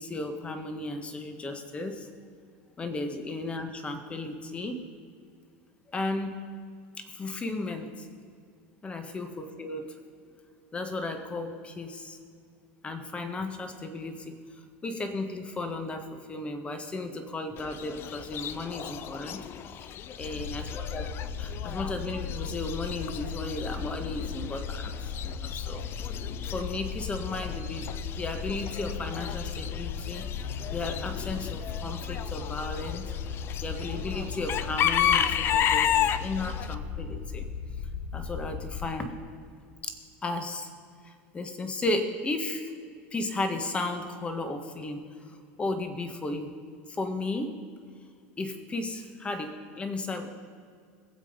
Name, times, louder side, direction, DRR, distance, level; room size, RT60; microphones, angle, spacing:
voice 1, 0.0-1.9 2.8-4.8 5.9-6.4 7.0-8.1 8.8-9.9 10.7-12.2 12.8-14.4 14.8-19.4 19.7-19.9 20.2-21.1 21.4-25.8 26.5-27.9 28.2-33.1 33.6-37.5 38.1-39.1 39.8-40.7 41.0-42.7 43.1-45.0 45.6-46.5 46.9-47.6 48.4-50.3, left 2 dB, 20° left, 7 dB, 1.5 m, -34 dB
Chicken rooster / Bird, 17.6-36.7, left 10 dB, 40° left, 0.5 m, -33 dB
sound 1, 20.2-38.9, left 6 dB, 60° left, 1.3 m, -37 dB
22.0 x 7.7 x 5.2 m, 2.1 s
supercardioid pair, 135°, 6 cm